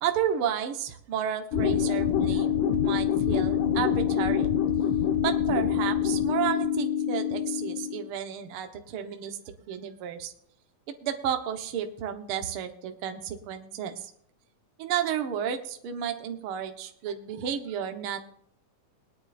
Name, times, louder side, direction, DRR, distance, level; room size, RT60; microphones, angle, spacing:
voice 1, 0.0-4.5 5.2-9.4 9.7-10.3 11.0-14.1 14.8-18.2, right 9 dB, 55° right, 6 dB, 1.7 m, -32 dB
sound 1, 1.5-8.1, left 9 dB, 85° left, 2.9 m, -26 dB
21.0 x 10.0 x 2.5 m, 0.69 s
omnidirectional pair, 3.5 m